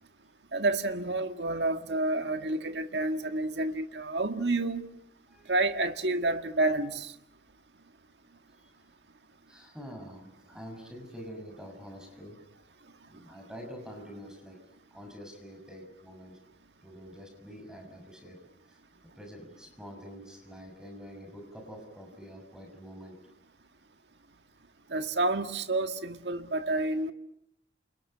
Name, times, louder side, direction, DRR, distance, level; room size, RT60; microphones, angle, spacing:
voice 1, 0.5-4.9 5.5-7.1 24.9-27.1, right 2 dB, 80° right, 1.8 m, -29 dB
voice 2, 9.5-12.4 13.1-14.6 14.9-16.4 16.8-18.4 18.7-18.8 19.1-23.2, equal, 5° right, 6.8 m, -46 dB
29.0 x 29.0 x 5.7 m
head